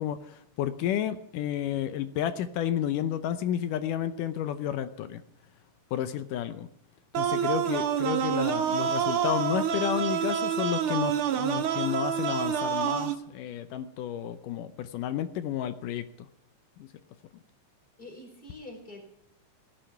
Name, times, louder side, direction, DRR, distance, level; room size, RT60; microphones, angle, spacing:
voice 1, 0.0-5.2 5.9-6.7 7.2-16.3 16.8-16.9, left 10 dB, 75° left, 11 dB, 2.3 m, -31 dB
sound 1, 7.1-13.1, right 8 dB, 75° right, 1.2 m, -27 dB
voice 2, 18.0-19.0, left 2 dB, 15° left, 2 dB, 4.2 m, -45 dB
16.5 x 8.8 x 7.0 m, 0.78 s
omnidirectional pair, 3.9 m